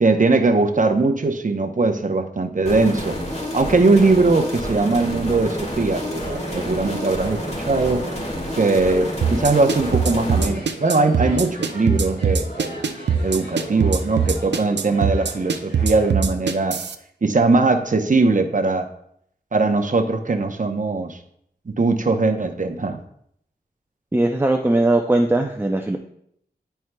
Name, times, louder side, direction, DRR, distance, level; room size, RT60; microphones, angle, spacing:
voice 1, 0.0-3.2 3.5-7.4 7.7-8.0 8.6-12.8 13.2-16.8 17.2-18.9 19.5-21.2 21.7-23.0, right 3 dB, 45° right, 5 dB, 0.8 m, -20 dB
sound 1, 2.6-10.5, equal, 35° left, 1.7 m, -29 dB
sound 2, 3.6-16.1, equal, 75° left, 2.2 m, -38 dB
sound 3, 9.2-16.9, right 6 dB, 80° right, 0.5 m, -21 dB
voice 2, 24.1-26.0, right 2 dB, 10° right, 3 dB, 0.5 m, -19 dB
11.0 x 4.6 x 2.2 m, 0.70 s
wide cardioid pair, 50°, 18 cm